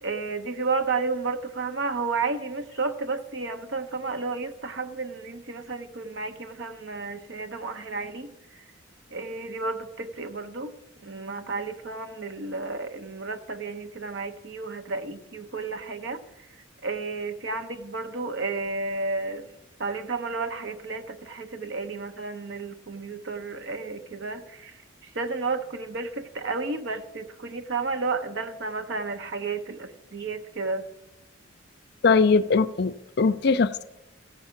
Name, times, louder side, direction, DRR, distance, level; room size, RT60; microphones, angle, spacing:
voice 1, 0.0-8.7 9.1-10.8 11.0-16.5 16.8-19.5 19.8-30.9, right 3 dB, 60° right, 0.9 m, -32 dB
voice 2, 32.0-33.8, left 4 dB, 55° left, 0.4 m, -21 dB
15.0 x 7.3 x 5.8 m
head